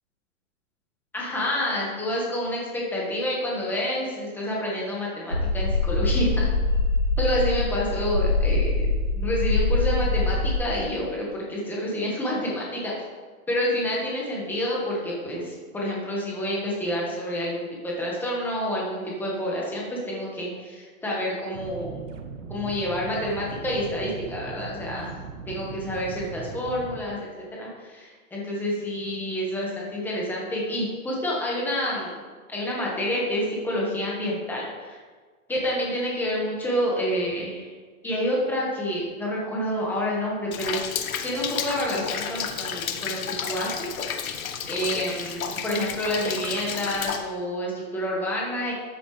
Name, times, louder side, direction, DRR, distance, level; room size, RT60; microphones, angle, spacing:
voice 1, 1.1-6.5 7.2-8.9 9.1-12.9 13.5-22.0 22.5-25.1 25.5-27.2 27.5-32.1 32.5-35.0 35.5-37.7 38.0-41.0 41.2-44.4 44.7-48.7, equal, 5° left, -4 dB, 1.5 m, -28 dB
sound 1, 5.3-10.5, left 3 dB, 20° left, 0.3 m, -23 dB
sound 2, 21.5-27.0, right 5 dB, 65° right, 1.4 m, -38 dB
Rain, 40.5-47.2, left 7 dB, 80° left, 1.4 m, -31 dB
13.0 x 8.6 x 3.4 m, 1.5 s
hypercardioid pair, 170°, 42 cm